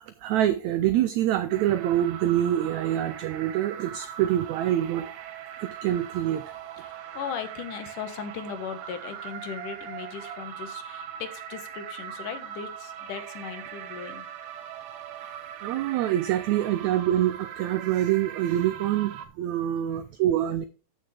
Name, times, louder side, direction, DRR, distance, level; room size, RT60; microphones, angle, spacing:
voice 1, 0.0-5.1 5.6-6.4 15.6-20.7, right 12 dB, 90° right, 1.6 m, -25 dB
sound 1, 1.5-19.3, right 9 dB, 70° right, 2.5 m, -40 dB
voice 2, 6.7-14.3 19.9-20.0, left 7 dB, 70° left, 2.8 m, -38 dB
14.0 x 6.4 x 3.3 m
omnidirectional pair, 4.0 m